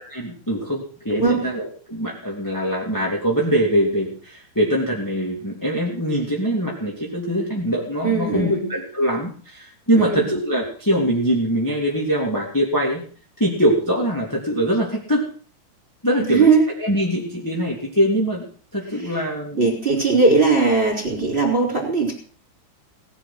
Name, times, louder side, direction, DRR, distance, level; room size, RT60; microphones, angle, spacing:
voice 1, 0.1-13.0 13.4-15.2 16.0-16.5 16.8-18.4 18.7-19.7, equal, 5° left, -3 dB, 2.1 m, -22 dB
voice 2, 8.0-8.6 9.9-10.3 16.2-16.6 19.6-22.1, right 4 dB, 15° right, 0 dB, 4.4 m, -19 dB
18.5 x 9.8 x 6.1 m, 0.44 s
omnidirectional pair, 5.5 m